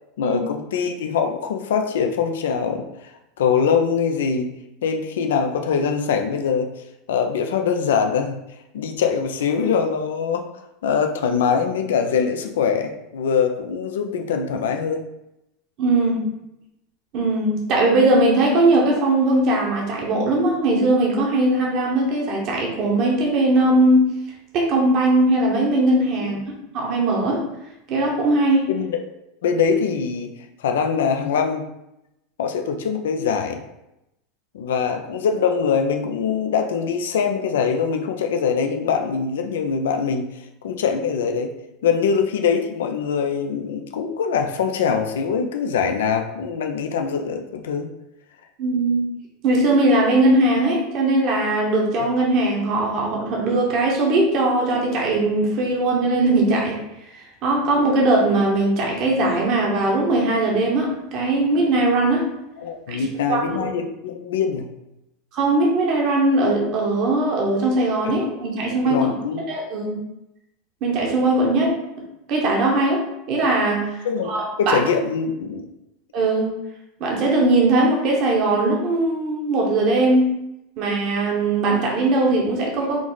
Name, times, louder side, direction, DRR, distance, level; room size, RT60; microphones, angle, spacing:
voice 1, 0.2-2.8 3.4-4.5 4.8-6.7 7.1-8.4 8.7-10.5 10.8-15.0 28.7-29.0 29.4-30.3 30.6-31.6 32.4-33.6 34.5-41.5 41.8-47.9 62.6-64.7 68.8-69.4 74.0-74.3 74.6-75.7, left 6 dB, 85° left, 5 dB, 0.4 m, -23 dB
voice 2, 15.8-16.3 17.1-24.1 24.5-26.5 26.7-27.4 27.9-28.6 48.6-49.0 49.4-56.8 57.1-62.3 62.9-63.7 65.3-69.1 69.5-70.0 70.8-71.8 72.3-74.8 76.1-76.5 77.0-80.3 80.8-83.0, right 2 dB, 50° right, -2 dB, 1.0 m, -20 dB
4.6 x 2.0 x 3.9 m, 0.88 s
supercardioid pair, 115°, 0 cm